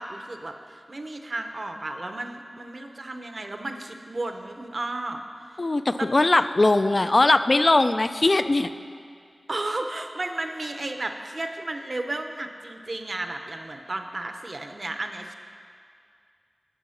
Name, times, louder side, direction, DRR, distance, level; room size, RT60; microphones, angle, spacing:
voice 1, 0.0-5.2 5.5-5.6 6.0-6.1 9.5-15.3, right 2 dB, 55° right, 6 dB, 0.7 m, -33 dB
voice 2, 5.6-8.7, left 2 dB, 50° left, 11 dB, 0.3 m, -20 dB
11.0 x 4.8 x 5.7 m, 2.2 s
wide cardioid pair, 50°, 0 cm